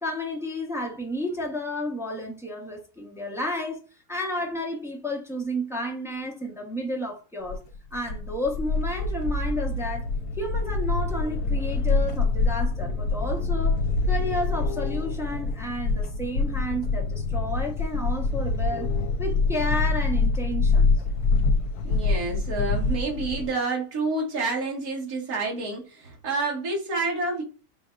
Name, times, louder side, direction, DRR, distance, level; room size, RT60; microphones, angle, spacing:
voice 1, 0.0-3.8 4.1-7.6 7.9-10.1 10.4-13.8 14.1-18.9 19.2-20.9, left 1 dB, 5° right, 0.6 m, -31 dB
sound 1, 7.5-23.5, left 3 dB, 75° left, 1.2 m, -25 dB
voice 2, 21.8-27.4, right 3 dB, 65° right, 2.0 m, -29 dB
5.1 x 3.5 x 2.4 m
omnidirectional pair, 1.7 m